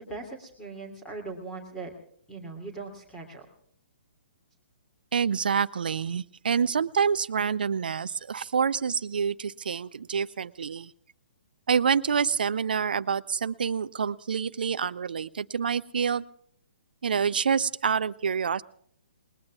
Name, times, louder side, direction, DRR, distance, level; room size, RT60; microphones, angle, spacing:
voice 1, 0.0-1.9 2.3-3.4, right 3 dB, 10° left, 2 dB, 2.8 m, -39 dB
voice 2, 5.1-10.9 11.7-16.2 17.0-18.6, right 6 dB, 60° right, 14 dB, 0.6 m, -27 dB
30.0 x 20.5 x 2.4 m, 0.64 s
figure-of-eight pair, 125°, 6 cm